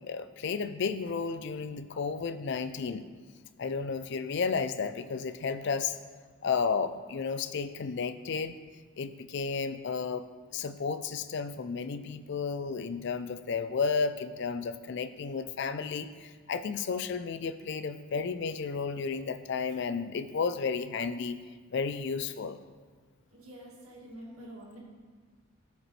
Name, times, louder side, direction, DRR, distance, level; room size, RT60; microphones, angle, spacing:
voice 1, 0.0-3.0 3.6-6.0 6.4-8.5 9.0-10.3 10.5-21.4 21.7-22.6, left 5 dB, 50° left, 11 dB, 0.4 m, -32 dB
voice 2, 23.3-24.8, right 1 dB, 80° right, -4 dB, 2.2 m, -47 dB
14.0 x 5.1 x 3.2 m, 1.5 s
head